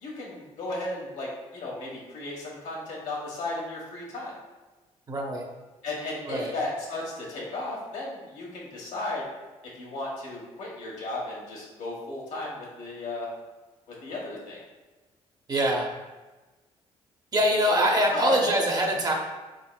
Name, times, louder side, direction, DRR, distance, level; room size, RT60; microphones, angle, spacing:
voice 1, 0.0-4.3 5.8-9.2 9.7-13.3 14.0-14.6 17.7-18.6, left 2 dB, 75° left, -4 dB, 1.3 m, -34 dB
voice 2, 5.1-5.4 6.3-6.5 15.5-15.9 17.3-19.1, right 1 dB, 30° right, 1 dB, 0.7 m, -24 dB
3.9 x 3.8 x 2.2 m, 1.2 s
cardioid pair, 85°, 12 cm